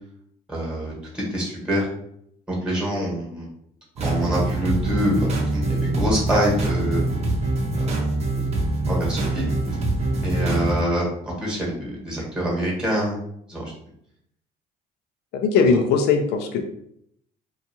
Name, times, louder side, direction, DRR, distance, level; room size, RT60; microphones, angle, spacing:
voice 1, 0.5-1.9 2.5-3.5 4.0-7.0 8.9-9.5 10.2-13.2 13.5-13.7, equal, 5° right, -3 dB, 1.1 m, -25 dB
sound 1, 4.0-10.8, right 2 dB, 40° right, 0.6 m, -24 dB
voice 2, 15.3-16.6, left 5 dB, 75° left, 4 dB, 0.4 m, -19 dB
2.6 x 2.3 x 2.7 m, 0.71 s
cardioid pair, 110°, 17 cm